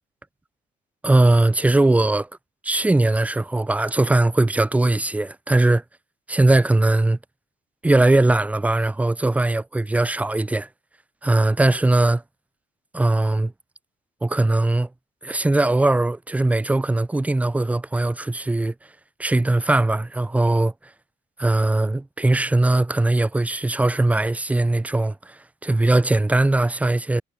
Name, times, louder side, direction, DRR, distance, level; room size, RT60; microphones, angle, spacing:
voice 1, 1.0-2.3 2.6-5.8 6.3-7.2 7.8-10.7 11.2-12.2 12.9-13.5 14.2-14.9 15.2-18.7 19.2-20.7 21.4-25.4 25.6-27.2, right 2 dB, 10° right, 0.7 m, -20 dB
cardioid pair, 110°, 17 cm